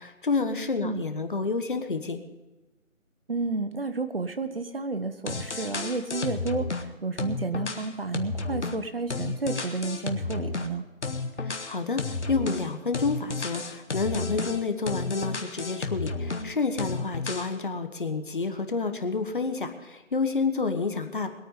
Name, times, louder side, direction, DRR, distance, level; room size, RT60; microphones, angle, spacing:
voice 1, 0.0-2.2 11.4-21.3, left 4 dB, 40° left, 8 dB, 1.3 m, -29 dB
voice 2, 3.3-10.9, right 3 dB, 45° right, 10 dB, 1.0 m, -31 dB
sound 1, 5.3-6.9 7.2-10.7 11.0-16.5 16.8-17.5, left 3 dB, 55° left, 1.5 m, -32 dB
21.0 x 9.0 x 5.4 m, 1.1 s
figure-of-eight pair, 165°, 41 cm